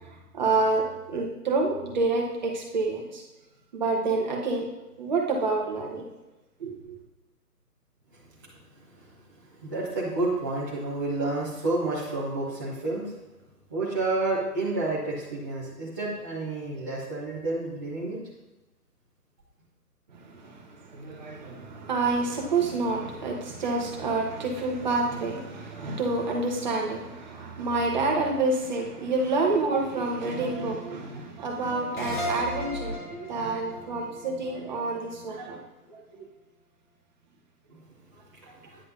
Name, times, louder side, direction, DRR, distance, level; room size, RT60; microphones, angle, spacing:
voice 1, 0.3-3.2 3.7-4.7 5.0-6.1 6.6-7.0 20.3-35.6 35.9-36.2, right 3 dB, 30° right, 0 dB, 1.1 m, -28 dB
voice 2, 9.4-13.1 13.7-18.2 37.7-37.8 38.4-38.8, right 2 dB, 15° right, -10 dB, 0.7 m, -30 dB
sound 1, 32.0-35.3, equal, 30° left, 0.7 m, -35 dB
9.8 x 7.5 x 2.6 m, 1.0 s
figure-of-eight pair, 145°, 47 cm